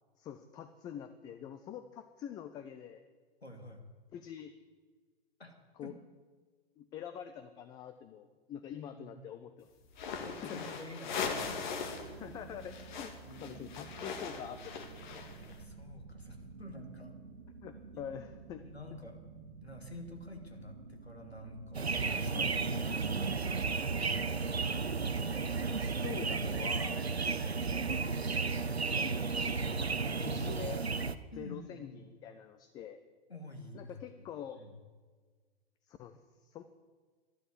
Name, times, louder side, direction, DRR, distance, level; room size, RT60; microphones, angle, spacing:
voice 1, 0.2-3.0 4.1-4.5 5.8-5.9 6.8-9.7 10.1-10.6 12.2-13.1 13.4-15.0 17.6-18.6 22.3-22.5 25.6-27.1 28.8-30.8 31.4-33.0 33.7-34.6 35.9-36.6, left 9 dB, 15° left, 10 dB, 0.4 m, -45 dB
voice 2, 3.4-3.8 5.4-5.5 5.8-5.9 9.0-9.3 10.2-11.6 12.1-12.3 13.2-13.6 15.4-17.1 17.9-18.0 18.6-19.2 19.6-24.0 27.3-27.7 31.3-32.0 33.3-34.7, left 1 dB, 85° left, 4 dB, 2.6 m, -49 dB
sound 1, 9.9-12.1 12.4-15.5, left 5 dB, 50° left, 2.1 m, -40 dB
sound 2, 11.1-29.7, right 4 dB, 70° right, 1.4 m, -51 dB
sound 3, 21.7-31.1, right 4 dB, 90° right, 0.8 m, -33 dB
12.0 x 11.5 x 8.2 m, 1.5 s
figure-of-eight pair, 110°, 31 cm